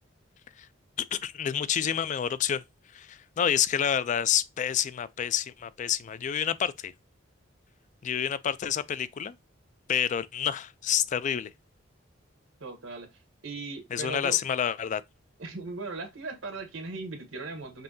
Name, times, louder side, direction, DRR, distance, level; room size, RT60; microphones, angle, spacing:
voice 1, 1.1-2.6 2.9-6.9 8.0-9.3 9.9-11.5 13.9-15.0, left 9 dB, 40° left, 0.3 m, -28 dB
voice 2, 12.6-13.1 13.4-14.4 15.4-17.8, right 3 dB, 80° right, 1.2 m, -38 dB
5.4 x 2.7 x 2.6 m
head